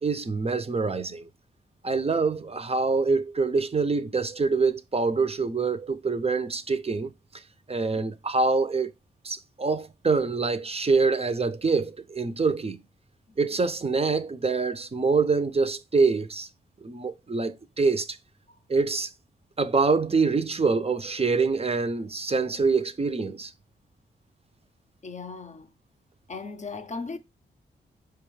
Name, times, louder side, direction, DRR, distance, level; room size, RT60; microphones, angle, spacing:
voice 1, 0.0-1.3 1.8-7.1 7.7-8.9 9.2-12.8 13.4-16.5 16.8-18.1 18.7-19.1 19.6-23.5, right 4 dB, 30° right, 0.6 m, -25 dB
voice 2, 25.0-25.7 26.3-27.2, left 4 dB, 35° left, 0.6 m, -37 dB
4.6 x 2.4 x 3.1 m
cardioid pair, 45°, 20 cm